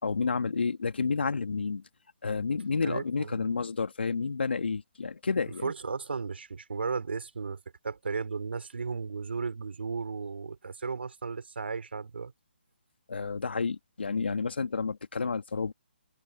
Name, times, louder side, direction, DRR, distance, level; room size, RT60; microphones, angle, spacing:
voice 1, 0.0-1.8 2.2-5.7 13.1-15.7, left 4 dB, 75° left, 2.7 m, -30 dB
voice 2, 2.8-3.5 5.6-12.3, right 5 dB, 75° right, 4.1 m, -35 dB
figure-of-eight pair, 150°, 6 cm